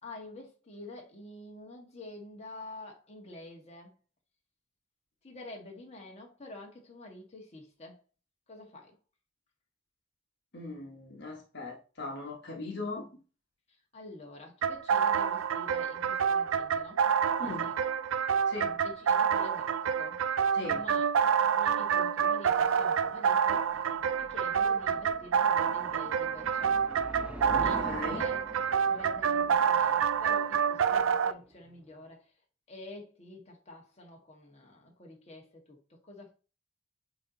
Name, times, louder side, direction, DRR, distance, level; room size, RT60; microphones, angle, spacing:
voice 1, 0.0-3.9 5.2-8.0 8.5-8.9 13.7-17.0 17.4-17.8 18.8-20.2 20.7-21.1 21.5-23.8 24.2-26.8 27.6-28.4 28.9-32.3 32.7-36.3, left 2 dB, 35° left, 1.5 m, -48 dB
voice 2, 10.5-13.1 17.4-17.7 18.5-18.8 20.5-20.8 27.5-28.2, left 3 dB, 60° left, 1.4 m, -39 dB
sound 1, 14.6-31.3, right 7 dB, 90° right, 0.4 m, -28 dB
sound 2, 23.1-32.0, right 1 dB, 5° right, 0.7 m, -46 dB
8.7 x 3.0 x 3.9 m
head